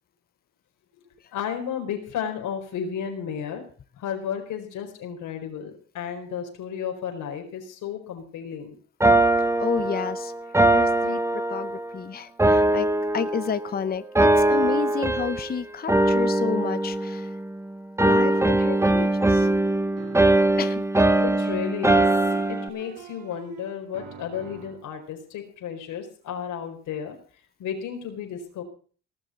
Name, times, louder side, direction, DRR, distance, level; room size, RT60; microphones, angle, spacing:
voice 1, 1.3-3.6 4.0-8.7 21.2-22.1 22.5-27.2 27.6-28.6, left 8 dB, 85° left, 4 dB, 4.6 m, -33 dB
sound 1, 9.0-11.9 12.4-13.7 14.2-15.5 15.9-17.6 18.0-22.7, right 2 dB, 10° right, 1.2 m, -21 dB
voice 2, 9.4-10.3 10.7-12.9 13.1-17.4 18.0-19.5 20.6-20.8, left 6 dB, 30° left, 14 dB, 0.7 m, -31 dB
sound 2, 18.2-20.9 22.2-24.9, right 9 dB, 85° right, 3.0 m, -44 dB
18.5 x 7.2 x 7.8 m, 0.43 s
cardioid pair, 90°, 30 cm